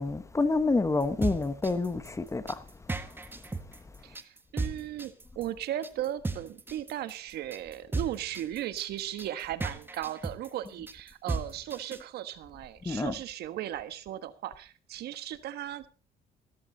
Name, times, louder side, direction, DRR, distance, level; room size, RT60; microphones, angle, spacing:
voice 1, 0.0-2.6 12.8-13.1, left 3 dB, 15° left, 1.2 m, -28 dB
sound 1, 1.0-12.0, right 3 dB, 10° right, 1.4 m, -35 dB
voice 2, 4.0-15.9, right 12 dB, 75° right, 1.4 m, -37 dB
14.5 x 14.0 x 4.0 m
cardioid pair, 110°, 17 cm